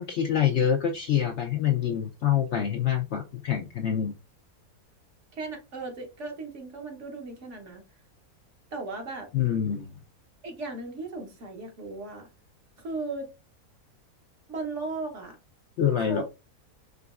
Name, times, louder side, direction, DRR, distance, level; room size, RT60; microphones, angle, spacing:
voice 1, 0.0-4.1 9.3-9.9 15.8-16.2, left 9 dB, 65° left, 3 dB, 0.7 m, -26 dB
voice 2, 5.3-7.8 8.7-9.3 10.4-12.3 12.8-13.3 14.5-15.4 16.1-16.2, right 3 dB, 55° right, 3 dB, 1.3 m, -36 dB
5.0 x 3.2 x 2.4 m, 0.27 s
omnidirectional pair, 1.6 m